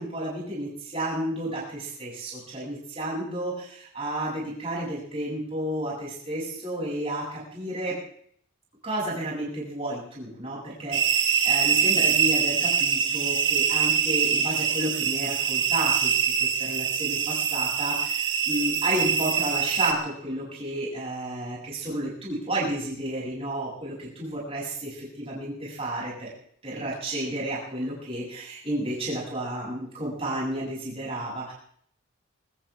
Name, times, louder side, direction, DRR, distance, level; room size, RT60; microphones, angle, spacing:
voice 1, 0.0-8.0 8.8-26.3 26.6-31.5, right 1 dB, 30° right, -5 dB, 7.9 m, -32 dB
sound 1, 10.9-19.9, right 7 dB, 60° right, 1.6 m, -24 dB
25.5 x 14.5 x 3.7 m, 0.63 s
head